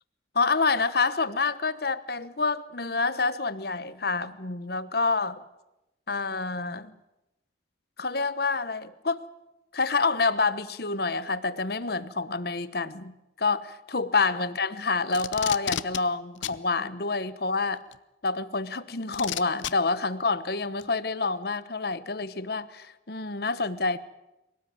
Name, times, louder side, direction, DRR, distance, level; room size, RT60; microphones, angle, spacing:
voice 1, 0.3-5.4 6.1-6.9 8.0-9.2 9.7-13.1 13.4-17.8 18.2-24.0, left 4 dB, 55° left, 14 dB, 1.1 m, -27 dB
Packing tape duct tape, 15.1-16.0 16.4-16.6 17.9-18.0 19.1-19.7 20.8-20.9, left 10 dB, 80° left, 0.8 m, -31 dB
24.0 x 18.0 x 9.5 m, 0.95 s
head